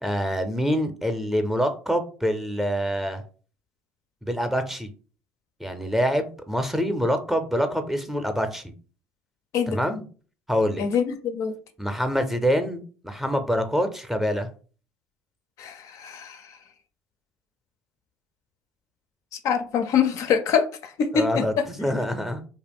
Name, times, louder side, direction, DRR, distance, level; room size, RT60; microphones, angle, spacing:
voice 1, 0.0-3.2 4.2-4.9 5.6-8.7 9.7-10.0 10.5-10.8 11.8-14.5 21.1-22.5, equal, 5° right, 8 dB, 0.5 m, -25 dB
voice 2, 10.8-11.5 15.6-16.5 19.4-21.6, left 7 dB, 60° left, 8 dB, 0.4 m, -25 dB
2.4 x 2.1 x 3.5 m, 0.39 s
hypercardioid pair, 70°, 6 cm